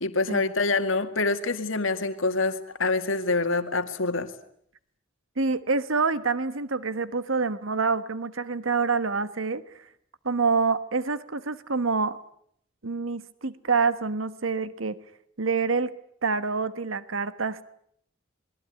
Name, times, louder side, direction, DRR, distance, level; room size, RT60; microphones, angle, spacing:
voice 1, 0.0-4.3, left 3 dB, 75° left, 7 dB, 2.1 m, -26 dB
voice 2, 5.4-9.6 10.2-12.2 12.8-15.0 15.4-15.9 16.2-17.6, right 4 dB, 85° right, 13 dB, 1.3 m, -26 dB
27.5 x 21.0 x 9.8 m, 0.69 s
head